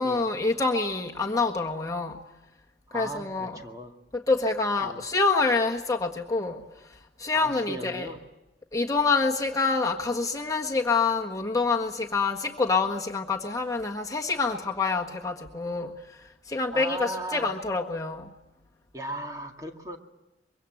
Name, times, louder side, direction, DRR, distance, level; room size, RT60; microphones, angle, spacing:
voice 1, 0.0-2.2 2.9-3.6 4.1-6.6 7.2-8.1 8.7-15.9 16.5-18.3, left 4 dB, 20° left, 0 dB, 1.6 m, -26 dB
voice 2, 2.9-3.9 4.8-5.0 7.3-8.2 16.7-17.6 18.9-20.0, right 1 dB, 20° right, 3 dB, 2.0 m, -37 dB
24.5 x 23.5 x 7.9 m, 0.98 s
head